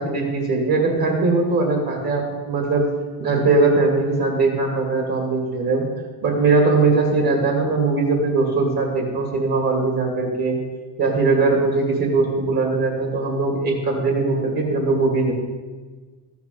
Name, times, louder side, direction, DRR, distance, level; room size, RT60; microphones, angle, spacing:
voice 1, 0.0-2.9 3.2-5.8 6.2-10.6 11.0-15.3, right 3 dB, 60° right, 2 dB, 2.7 m, -20 dB
14.0 x 9.4 x 5.5 m, 1.4 s
cardioid pair, 120°, 41 cm